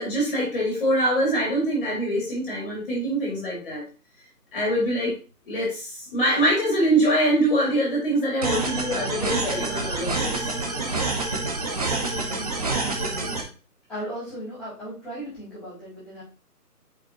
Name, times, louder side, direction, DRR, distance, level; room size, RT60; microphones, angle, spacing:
voice 1, 0.0-3.8 4.5-5.1 5.5-10.3, right 1 dB, 35° left, -3 dB, 2.7 m, -24 dB
sound 1, 8.4-13.4, right 3 dB, 25° right, 0.9 m, -27 dB
voice 2, 10.8-11.2 12.1-13.4 13.9-16.2, equal, ahead, -10 dB, 3.8 m, -38 dB
8.3 x 5.4 x 3.0 m, 0.36 s
figure-of-eight pair, 160°, 48 cm